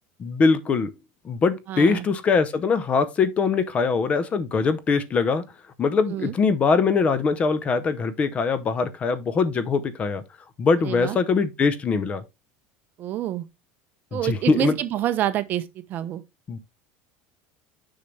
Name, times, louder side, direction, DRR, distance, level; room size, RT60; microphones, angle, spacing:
voice 1, 0.2-0.9 1.2-5.4 5.8-10.2 10.6-12.2 14.1-14.7 16.5-16.6, left 4 dB, 25° left, 0.7 m, -22 dB
voice 2, 1.7-2.0 6.0-6.3 10.8-11.2 13.0-13.5 14.1-16.2, right 12 dB, 40° right, 0.7 m, -27 dB
6.8 x 5.6 x 3.2 m
cardioid pair, 150°, 5 cm